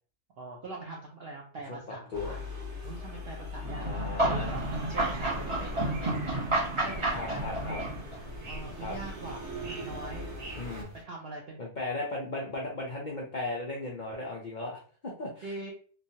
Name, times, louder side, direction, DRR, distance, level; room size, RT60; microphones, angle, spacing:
voice 1, 0.4-2.4 2.8-6.4 6.8-7.6 8.5-10.3 10.9-11.8 15.4-15.7, right 2 dB, 70° right, -1 dB, 0.5 m, -43 dB
voice 2, 1.7-2.4 3.8-4.5 7.1-7.8 8.8-9.0 10.6-10.9 11.6-15.4, left 2 dB, 80° left, -3 dB, 0.4 m, -36 dB
sound 1, 2.1-10.8, left 2 dB, 50° right, 1.4 m, -40 dB
sound 2, 3.6-8.3, right 2 dB, 25° right, 0.7 m, -31 dB
sound 3, 4.3-11.0, right 1 dB, 90° right, 1.4 m, -48 dB
3.1 x 2.2 x 2.7 m, 0.43 s
omnidirectional pair, 1.6 m